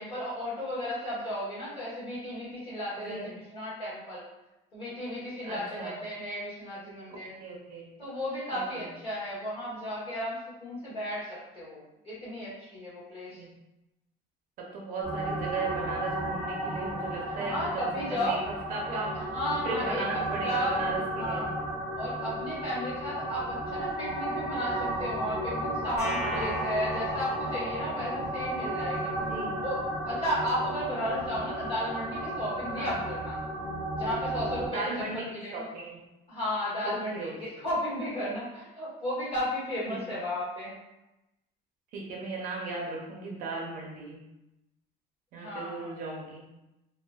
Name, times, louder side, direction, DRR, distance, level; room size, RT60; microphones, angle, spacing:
voice 1, 0.0-4.2 4.7-7.3 8.0-13.4 17.3-18.4 18.9-20.8 21.2-21.4 21.9-29.1 29.6-33.4 33.9-35.6 36.3-40.7 45.4-46.0, equal, 30° left, -9 dB, 1.3 m, -34 dB
voice 2, 5.4-5.9 7.4-7.9 8.5-8.9 13.3-13.5 14.6-18.4 18.7-19.1 19.6-21.4 26.2-26.5 29.3-29.5 32.8-33.0 34.7-35.2 35.5-36.0 36.8-37.5 39.9-40.2 41.9-44.2 45.3-46.4, right 3 dB, 55° right, -2 dB, 0.6 m, -36 dB
sound 1, 15.0-34.7, right 1 dB, 15° left, 0.9 m, -34 dB
sound 2, 26.0-29.1, left 1 dB, 55° left, 0.9 m, -37 dB
2.8 x 2.1 x 2.3 m, 0.95 s
cardioid pair, 165°, 17 cm